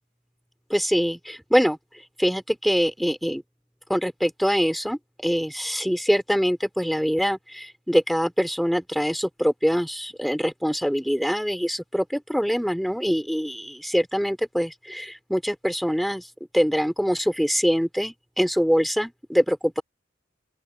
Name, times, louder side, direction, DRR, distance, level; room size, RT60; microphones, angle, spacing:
voice 1, 0.7-1.8 2.2-3.4 3.9-16.3 16.5-19.8, equal, ahead, 3.6 m, -24 dB
open air
head